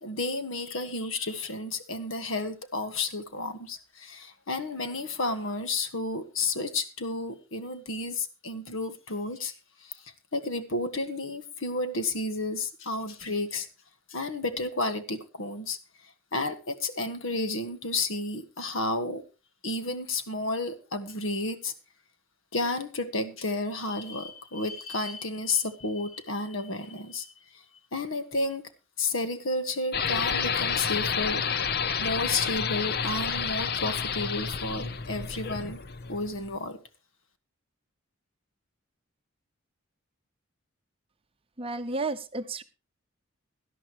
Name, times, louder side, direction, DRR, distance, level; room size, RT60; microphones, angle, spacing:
voice 1, 0.0-9.5 9.8-13.7 14.1-15.8 16.3-19.2 19.6-21.7 22.5-27.3 27.9-28.7 29.0-31.4 32.0-35.8 36.1-36.8, left 2 dB, 70° left, 1.5 m, -31 dB
sound 1, 29.9-36.6, left 6 dB, 50° left, 0.7 m, -30 dB
voice 2, 41.6-42.6, right 3 dB, 25° right, 0.7 m, -32 dB
17.5 x 11.5 x 3.0 m
head